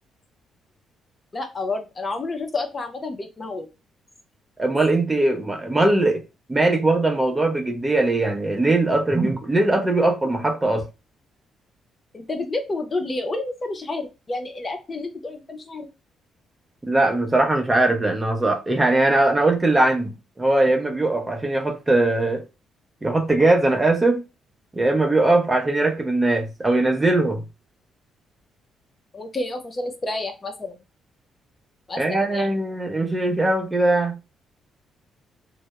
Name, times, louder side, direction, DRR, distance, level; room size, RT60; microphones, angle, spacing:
voice 1, 1.3-3.7 12.1-15.9 29.1-30.8 31.9-32.5, left 2 dB, 30° left, 0.5 m, -30 dB
voice 2, 4.6-6.2 6.5-10.9 16.9-22.4 23.0-24.2 24.7-27.4 32.0-34.2, right 2 dB, 20° right, 0.6 m, -20 dB
2.2 x 2.0 x 2.8 m
cardioid pair, 90°, 0 cm